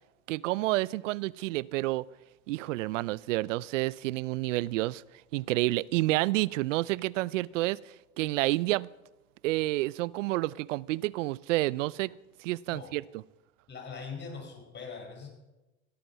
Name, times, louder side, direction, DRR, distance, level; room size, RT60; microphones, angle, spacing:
voice 1, 0.3-2.0 2.5-5.0 5.3-7.8 8.2-8.9 9.4-12.1 12.4-13.0, right 19 dB, 85° right, 0.5 m, -29 dB
voice 2, 13.7-15.3, left 5 dB, 30° left, 5.0 m, -41 dB
17.5 x 8.6 x 5.7 m
hypercardioid pair, 90°, 37 cm